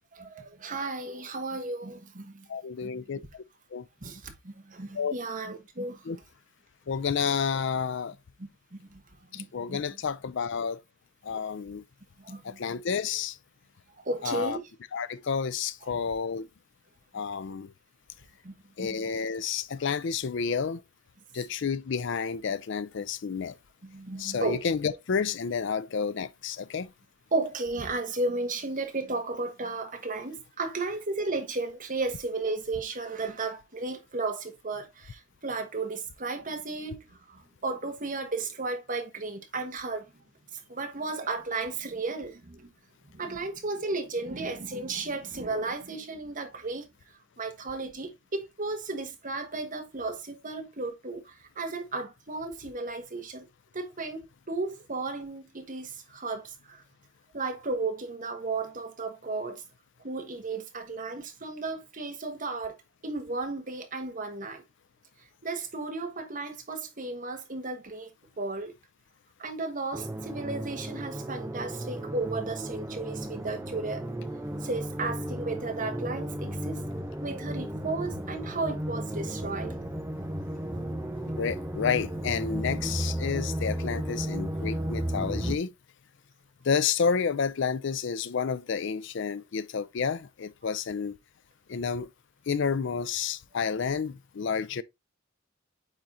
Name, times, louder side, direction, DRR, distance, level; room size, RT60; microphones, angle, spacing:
voice 1, 0.2-2.5 2.8-3.3 4.0-6.2 8.7-9.0 9.3-9.8 11.3-11.4 12.2-12.6 14.0-14.6 18.4-19.0 23.8-24.6 27.3-37.0 37.3-40.1 40.7-42.7 43.1-46.9 47.4-53.5 53.7-56.8 57.3-59.6 60.0-62.7 63.0-64.6 65.4-68.1 68.4-68.7 69.4-74.0 74.6-76.8 77.2-79.8, right 3 dB, 40° right, 1.3 m, -34 dB
voice 2, 2.5-3.2 3.7-3.8 4.9-5.1 6.1-6.2 6.9-8.2 9.3-10.8 11.2-11.8 12.4-13.4 14.2-14.6 14.9-16.5 17.1-17.7 18.8-20.8 21.3-23.6 24.2-26.9 81.4-85.7 86.6-91.2 91.7-92.1 92.5-94.8, left 6 dB, 65° left, 0.5 m, -30 dB
sound 1, 69.9-85.6, right 1 dB, 15° right, 0.9 m, -34 dB
8.8 x 3.8 x 2.8 m
head